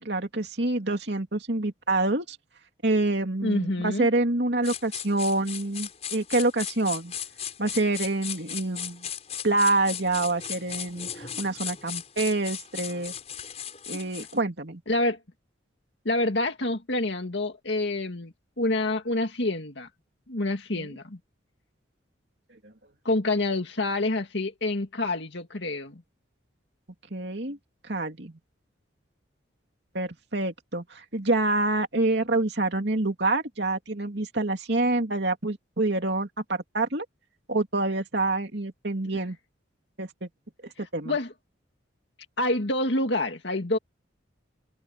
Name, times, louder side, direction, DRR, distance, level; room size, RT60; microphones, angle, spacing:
voice 1, 0.0-2.4 2.8-7.1 7.6-9.1 9.4-13.1 13.9-14.8 20.7-20.9 27.1-27.6 27.8-28.4 29.9-37.0 37.5-39.4 40.0-40.3 40.6-41.1, right 2 dB, 60° right, 2.8 m, -27 dB
voice 2, 3.4-4.1 14.9-15.2 16.1-19.9 20.3-21.2 23.0-26.0 41.0-41.3 42.4-43.8, left 2 dB, 65° left, 2.1 m, -27 dB
sound 1, 4.6-14.4, left 9 dB, 35° left, 6.5 m, -37 dB
open air
head